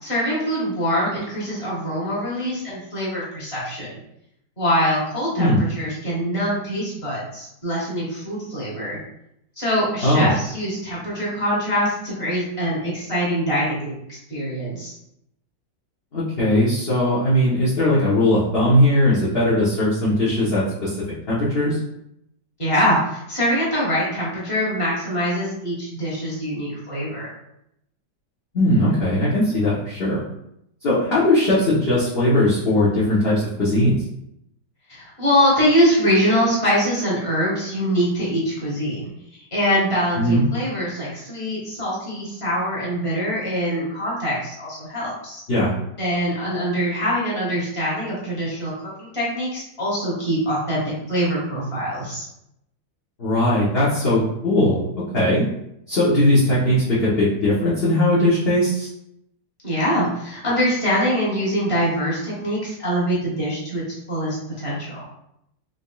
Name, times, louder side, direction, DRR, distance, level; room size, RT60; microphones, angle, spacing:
voice 1, 0.0-4.0 4.6-9.0 9.6-14.9 22.6-27.3 34.9-39.1 39.5-45.4 46.0-52.2 59.6-65.0, equal, 20° left, -6 dB, 1.2 m, -23 dB
voice 2, 16.1-21.0 21.3-21.8 28.5-30.2 30.8-34.0 40.2-40.4 45.5-45.7 53.2-54.8 55.1-55.5 55.9-58.9, left 1 dB, 45° left, -10 dB, 0.9 m, -19 dB
3.9 x 3.4 x 2.3 m, 0.78 s
omnidirectional pair, 2.0 m